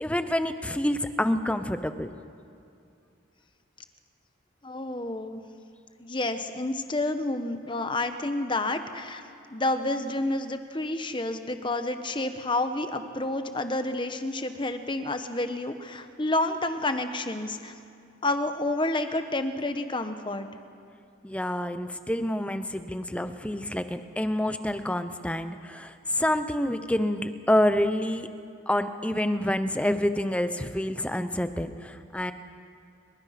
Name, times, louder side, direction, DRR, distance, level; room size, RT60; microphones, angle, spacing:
voice 1, 0.0-2.1 21.2-28.3 28.7-32.3, left 1 dB, 5° left, 10 dB, 0.7 m, -27 dB
voice 2, 4.6-5.4 6.0-9.2 9.5-17.7 18.2-20.5, left 2 dB, 25° left, 8 dB, 1.1 m, -29 dB
30.0 x 23.5 x 5.9 m, 2.5 s
head